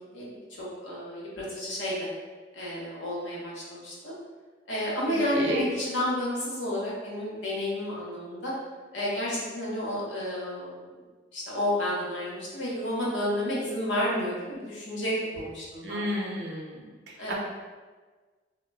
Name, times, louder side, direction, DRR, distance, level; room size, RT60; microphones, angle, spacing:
voice 1, 0.1-2.1 2.5-4.1 4.7-8.5 8.9-10.9 11.3-16.0 17.2-17.3, left 1 dB, 85° left, -6 dB, 0.9 m, -31 dB
voice 2, 5.1-5.7 15.8-16.8 17.3-17.4, equal, 70° right, -1 dB, 0.5 m, -31 dB
2.2 x 2.0 x 3.4 m, 1.4 s
head